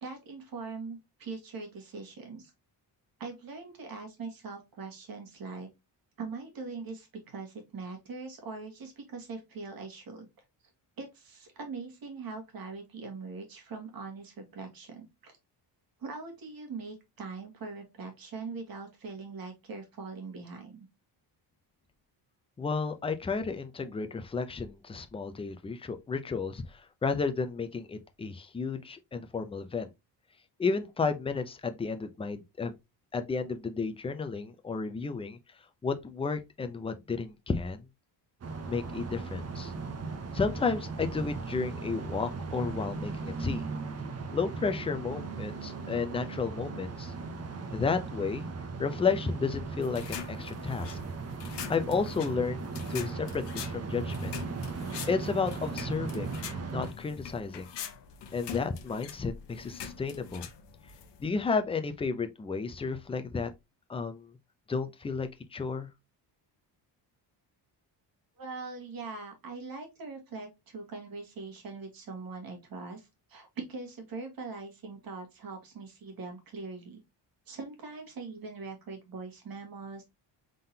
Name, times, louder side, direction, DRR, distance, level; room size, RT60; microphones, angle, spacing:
voice 1, 0.0-2.5 3.2-5.7 6.2-10.3 11.0-15.4 16.0-20.9 68.4-77.0 77.5-80.0, right 4 dB, 50° right, 1.6 m, -42 dB
voice 2, 22.6-29.9 30.6-32.7 33.1-35.4 35.8-37.8 38.7-39.7 40.3-43.6 44.3-47.1 47.7-48.5 48.8-51.0 51.7-54.3 55.1-56.3 56.7-57.7 58.3-60.5 61.2-63.5 63.9-64.3 64.7-65.9, left 4 dB, 15° left, 0.4 m, -32 dB
sound 1, 38.4-56.9, right 4 dB, 35° right, 0.7 m, -38 dB
sound 2, 49.8-61.3, left 8 dB, 70° left, 0.8 m, -44 dB
3.7 x 3.7 x 2.7 m
cardioid pair, 135°, 44 cm